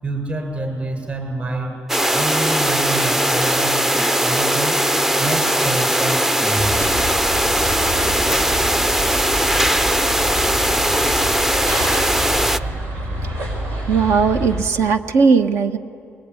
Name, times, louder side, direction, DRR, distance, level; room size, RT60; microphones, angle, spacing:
voice 1, 0.0-1.7 2.1-4.8 5.2-7.0, right 2 dB, 30° right, 4 dB, 6.9 m, -27 dB
sound 1, 1.9-12.6, right 1 dB, 5° right, 0.5 m, -19 dB
sound 2, 6.6-14.6, right 1 dB, 85° right, 5.5 m, -27 dB
voice 2, 13.9-15.8, right 5 dB, 70° right, 8 dB, 1.3 m, -17 dB
23.0 x 21.5 x 9.8 m, 2.5 s
cardioid pair, 95°, 5 cm